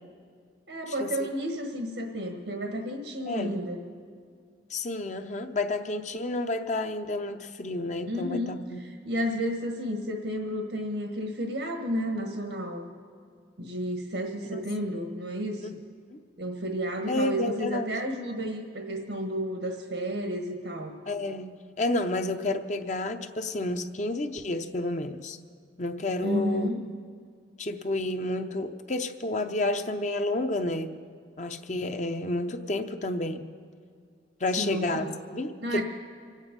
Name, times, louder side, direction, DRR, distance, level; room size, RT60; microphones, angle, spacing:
voice 1, 0.7-3.9 8.1-12.9 13.6-15.8 16.4-20.9 26.2-26.8 34.6-35.2 35.6-35.8, equal, 85° right, 3 dB, 1.5 m, -32 dB
voice 2, 4.7-8.8 14.5-14.6 15.6-15.7 16.1-16.2 17.1-17.9 21.1-21.5 21.8-25.4 25.8-26.7 27.6-30.9 31.4-33.5 34.4-35.1 35.3-35.8, left 2 dB, 40° left, 7 dB, 0.7 m, -30 dB
25.0 x 9.1 x 5.3 m, 2.1 s
head